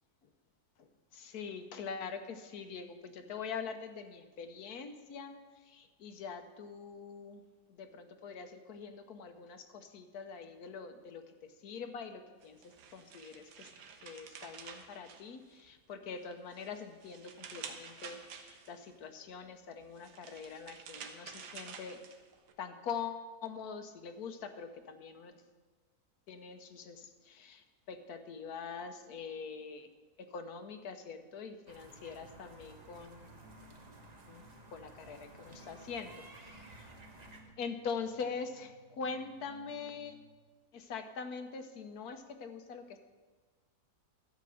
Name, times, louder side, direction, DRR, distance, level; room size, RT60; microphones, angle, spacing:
voice 1, 0.8-7.4 7.7-13.7 14.0-22.0 22.6-25.4 26.3-29.9 30.2-33.3 34.3-37.0 37.6-40.2 40.7-43.0, left 5 dB, 70° left, 8 dB, 1.4 m, -44 dB
sound 1, 12.4-15.8 16.2-18.9 19.8-22.5, right 6 dB, 85° right, 1.5 m, -50 dB
sound 2, 31.7-37.4, right 1 dB, 25° right, 1.3 m, -55 dB
sound 3, 31.9-40.5, right 3 dB, 70° right, 3.2 m, -61 dB
12.5 x 5.2 x 7.7 m, 1.3 s
omnidirectional pair, 1.7 m